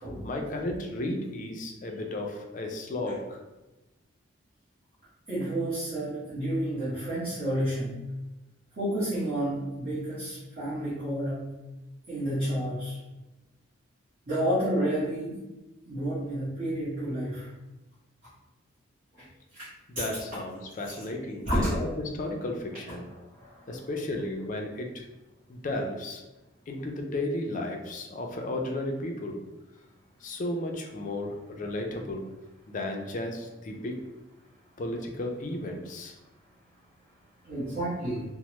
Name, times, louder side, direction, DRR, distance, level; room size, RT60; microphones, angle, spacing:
voice 1, 0.2-3.4 19.9-23.1 23.7-25.1 25.5-26.2 26.7-29.4 30.2-32.3 32.7-34.0 34.8-36.1, left 1 dB, 40° left, 2 dB, 0.3 m, -34 dB
voice 2, 5.3-7.9 8.8-11.4 12.1-13.0 14.3-15.4 15.9-17.5 19.9-20.1 20.9-21.0 21.5-21.7 37.5-38.2, right 1 dB, 40° right, -12 dB, 1.0 m, -30 dB
3.1 x 2.0 x 2.9 m, 1.1 s
head